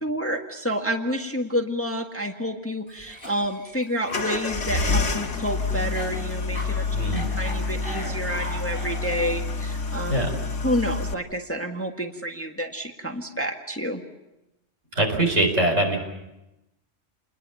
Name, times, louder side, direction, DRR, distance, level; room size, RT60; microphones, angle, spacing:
voice 1, 0.0-6.9 7.4-10.1 10.6-14.0, equal, 10° left, 3 dB, 1.6 m, -29 dB
Cough, 2.9-9.5, left 1 dB, 45° left, 7.7 m, -39 dB
sound 1, 4.1-11.1, left 4 dB, 75° left, 1.9 m, -28 dB
voice 2, 6.9-7.3 10.1-10.3 15.0-16.0, right 1 dB, 75° right, 3 dB, 5.2 m, -22 dB
29.0 x 21.0 x 7.1 m, 0.94 s
omnidirectional pair, 1.3 m